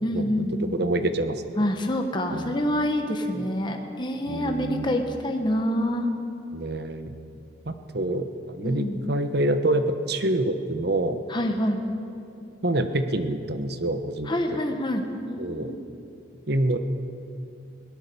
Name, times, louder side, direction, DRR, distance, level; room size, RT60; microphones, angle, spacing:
voice 1, 0.0-0.7 1.6-6.1 8.6-9.0 11.3-11.8 14.2-15.0 15.3-15.8, equal, 25° left, 3 dB, 1.3 m, -26 dB
voice 2, 0.6-1.4 2.3-2.6 3.3-3.5 4.3-4.9 6.5-7.1 7.6-11.2 12.6-14.6 15.4-15.7 16.5-16.8, right 1 dB, 55° right, 9 dB, 1.2 m, -26 dB
22.0 x 17.5 x 7.0 m, 2.7 s
head